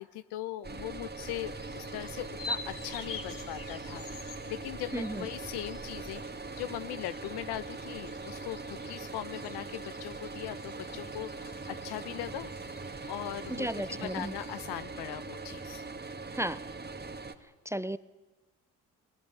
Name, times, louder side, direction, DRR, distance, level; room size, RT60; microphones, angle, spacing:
voice 1, 0.0-6.2 6.6-12.5 12.8-15.8, left 13 dB, 75° left, 15 dB, 1.1 m, -40 dB
sound 1, 0.6-17.3, right 3 dB, 25° right, 2.2 m, -41 dB
sound 2, 1.4-14.6, left 3 dB, 55° left, 3.2 m, -47 dB
voice 2, 4.9-5.3 13.5-14.3 16.3-16.6 17.7-18.0, right 1 dB, 5° right, 16 dB, 0.7 m, -33 dB
21.5 x 19.0 x 9.9 m, 1.2 s
hypercardioid pair, 55°, 40 cm